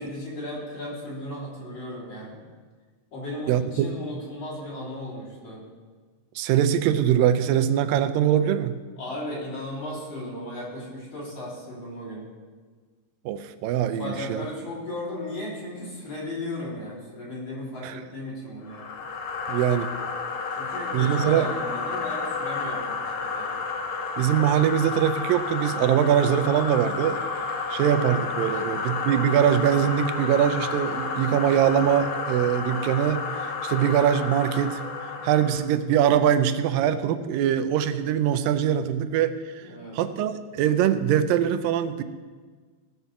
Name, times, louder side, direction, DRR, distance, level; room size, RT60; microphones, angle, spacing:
voice 1, 0.0-2.4 3.1-5.6 9.0-12.3 13.9-18.9 20.5-23.0 23.3-23.6 39.6-40.0, left 1 dB, 45° left, -6 dB, 4.5 m, -36 dB
voice 2, 3.5-3.9 6.4-8.8 13.3-14.4 17.8-18.0 19.5-19.9 20.9-21.5 24.2-27.2 27.7-33.2 33.6-34.8 35.2-39.4 39.9-42.0, right 10 dB, 80° right, 10 dB, 2.3 m, -22 dB
sound 1, 18.7-35.7, left 4 dB, 65° left, 2.3 m, -31 dB
17.5 x 6.1 x 6.9 m, 1.5 s
omnidirectional pair, 4.1 m